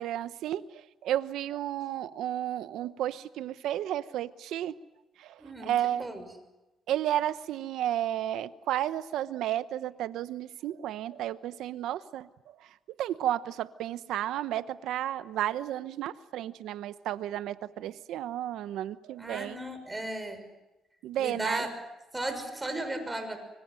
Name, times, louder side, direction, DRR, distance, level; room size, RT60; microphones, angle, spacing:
voice 1, 0.0-4.7 5.2-6.1 6.9-19.6 21.0-21.7, right 12 dB, 85° right, 13 dB, 1.0 m, -32 dB
voice 2, 5.4-5.7 6.0-6.3 19.2-20.5 21.2-21.7 22.1-23.4, right 1 dB, 15° right, 7 dB, 6.3 m, -35 dB
25.0 x 24.5 x 7.8 m, 1.0 s
cardioid pair, 90°, 0 cm